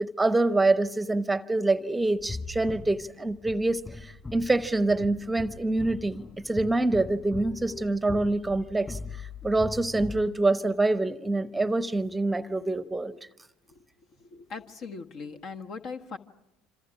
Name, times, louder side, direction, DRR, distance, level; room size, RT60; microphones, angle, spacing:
voice 1, 0.0-13.2, right 2 dB, 10° right, 15 dB, 0.9 m, -26 dB
sound 1, 2.2-10.3, left 3 dB, 25° left, 4.2 m, -40 dB
voice 2, 14.2-16.2, left 4 dB, 50° left, 6 dB, 1.4 m, -40 dB
27.0 x 26.5 x 6.1 m, 0.91 s
figure-of-eight pair, 65°, 0 cm